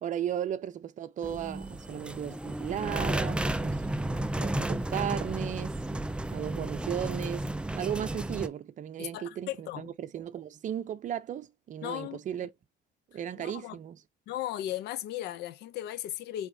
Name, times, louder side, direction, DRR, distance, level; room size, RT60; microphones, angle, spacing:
voice 1, 0.0-3.8 4.1-6.0 6.3-12.5 13.1-14.0, right 10 dB, 50° right, 0.7 m, -35 dB
sound 1, 1.2-8.5, right 1 dB, 5° right, 0.4 m, -33 dB
voice 2, 9.0-9.9 11.8-12.2 13.4-13.8 14.3-16.5, left 13 dB, 80° left, 0.6 m, -36 dB
4.9 x 3.6 x 2.8 m
cardioid pair, 110°, 17 cm